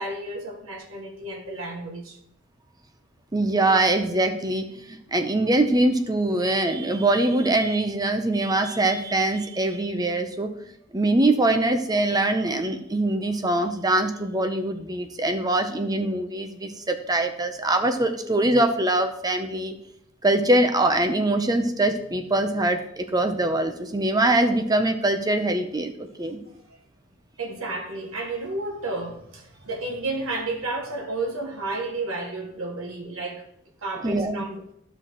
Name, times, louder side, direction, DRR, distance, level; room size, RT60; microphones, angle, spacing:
voice 1, 0.0-2.2 27.4-33.4 33.8-34.7, right 2 dB, 85° right, 1.4 m, -32 dB
voice 2, 3.3-10.5 10.9-19.7 20.2-26.4 34.0-34.4, right 2 dB, 20° right, 0.7 m, -23 dB
12.5 x 5.9 x 3.1 m
head